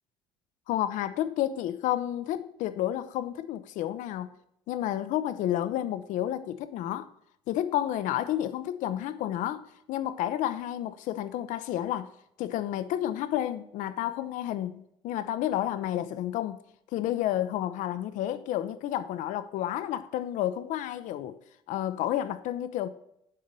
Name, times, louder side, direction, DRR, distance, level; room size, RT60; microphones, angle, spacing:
voice 1, 0.7-4.3 4.7-7.1 7.5-9.6 9.9-12.1 12.4-16.6 16.9-21.4 21.7-22.9, left 12 dB, 55° left, 0.5 m, -30 dB
9.9 x 3.8 x 6.5 m
hypercardioid pair, 55°, 15 cm